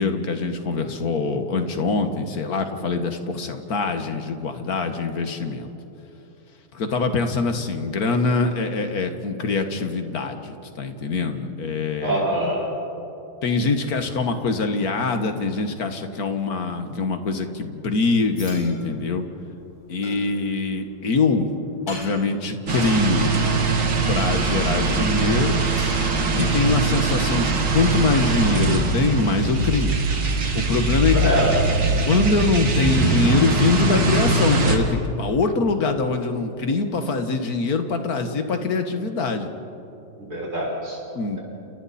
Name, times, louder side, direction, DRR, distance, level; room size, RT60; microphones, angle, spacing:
voice 1, 0.0-5.7 6.7-12.3 13.4-19.2 19.9-21.5 21.9-23.3 24.1-25.7 26.3-30.0 30.5-31.3 32.1-39.5 41.2-41.4, left 3 dB, 45° left, 7 dB, 1.8 m, -23 dB
voice 2, 12.0-12.7 31.1-31.5 40.2-41.0, right 1 dB, 40° right, -4 dB, 7.0 m, -24 dB
sound 1, 17.9-28.3, left 1 dB, 75° left, 8.5 m, -46 dB
sound 2, 22.7-34.8, right 3 dB, 60° right, 2.8 m, -22 dB
29.5 x 29.5 x 4.3 m, 2.9 s
omnidirectional pair, 2.4 m